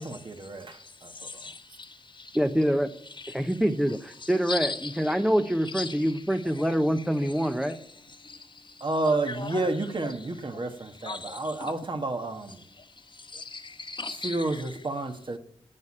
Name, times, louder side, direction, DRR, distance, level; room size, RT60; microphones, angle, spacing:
voice 1, 0.0-1.5 8.8-12.6 14.2-15.4, right 2 dB, 45° right, 1.6 m, -30 dB
voice 2, 0.6-2.4 3.2-3.6 4.2-5.2 5.6-6.1 6.6-6.7 7.2-7.8 8.1-9.7 10.0-10.1 11.0-11.7 12.8-14.6, left 3 dB, 40° left, 1.4 m, -39 dB
voice 3, 2.3-2.9 3.3-7.8, equal, 5° right, 0.9 m, -25 dB
10.5 x 8.3 x 8.8 m
cardioid pair, 60°, 12 cm